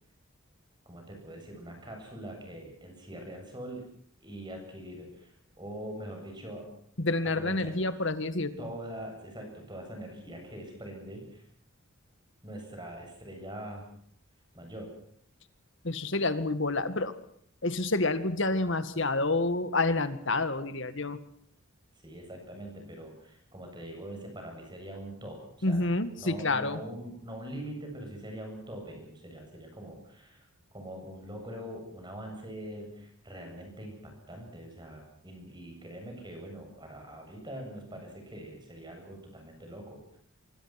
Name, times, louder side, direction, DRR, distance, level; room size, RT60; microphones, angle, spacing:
voice 1, 0.9-3.9 4.2-6.7 7.3-7.8 8.6-11.5 12.4-13.9 14.5-15.0 22.0-30.5 30.7-40.2, right 1 dB, 20° right, 3 dB, 7.7 m, -43 dB
voice 2, 7.0-8.6 15.8-17.1 17.6-21.2 25.6-26.8, left 2 dB, 60° left, 12 dB, 2.0 m, -28 dB
25.0 x 24.5 x 6.0 m, 0.62 s
head